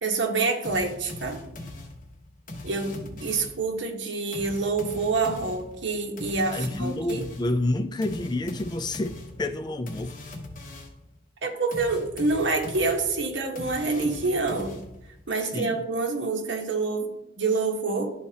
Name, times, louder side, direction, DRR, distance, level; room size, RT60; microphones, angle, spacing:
voice 1, 0.0-1.4 2.6-7.2 11.4-14.8 15.3-18.1, right 3 dB, 75° right, 1.2 m, -27 dB
sound 1, 0.6-3.7 4.3-11.1 11.7-15.2, left 2 dB, 45° left, 1.2 m, -41 dB
voice 2, 6.5-10.2 15.5-15.8, left 2 dB, 25° left, 0.3 m, -29 dB
11.5 x 4.2 x 2.8 m
head